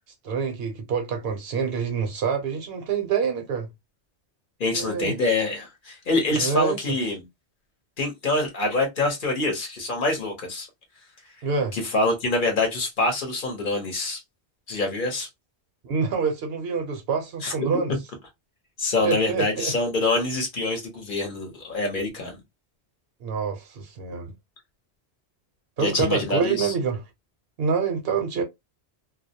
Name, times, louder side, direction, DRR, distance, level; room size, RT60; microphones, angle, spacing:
voice 1, 0.2-3.7 4.7-5.1 6.4-6.8 11.4-11.8 15.8-17.9 19.0-19.7 23.2-24.3 25.8-27.0 27.6-28.4, right 5 dB, 65° right, 0.8 m, -26 dB
voice 2, 4.6-7.2 8.0-10.7 11.7-14.2 14.7-15.3 17.4-17.7 18.8-22.4 25.8-26.7, left 2 dB, 50° left, 0.9 m, -25 dB
2.3 x 2.0 x 2.6 m
omnidirectional pair, 1.1 m